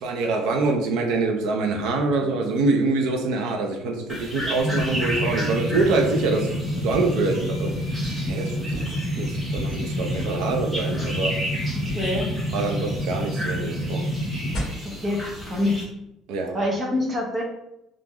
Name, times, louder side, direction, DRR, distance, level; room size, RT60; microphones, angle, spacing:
voice 1, 0.0-8.9 9.1-11.4 12.5-14.0 16.3-16.6, right 3 dB, 70° right, 3 dB, 0.6 m, -25 dB
sound 1, 4.1-15.8, equal, 5° right, 1.0 m, -34 dB
sound 2, 4.6-14.6, equal, 30° left, 1.4 m, -28 dB
voice 2, 11.7-12.3 14.8-15.8 16.5-17.4, left 1 dB, 20° right, -1 dB, 0.6 m, -26 dB
3.7 x 2.4 x 3.0 m, 0.84 s
cardioid pair, 175°, 0 cm